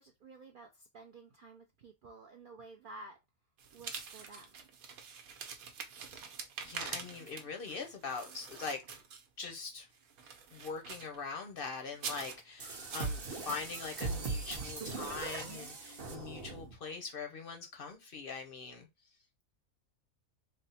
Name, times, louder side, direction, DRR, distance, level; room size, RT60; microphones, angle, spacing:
voice 1, 0.0-3.2 3.7-4.7, right 2 dB, 75° right, 0.4 m, -53 dB
sound 1, 3.6-9.5 9.9-11.2 11.9-12.4 12.9-13.2, right 6 dB, 90° right, 1.2 m, -45 dB
voice 2, 6.6-9.0 9.4-9.9 10.5-18.9, left 5 dB, 60° left, 0.6 m, -42 dB
sound 2, 12.6-16.8, right 4 dB, 50° right, 0.9 m, -40 dB
3.4 x 2.0 x 4.0 m
omnidirectional pair, 1.5 m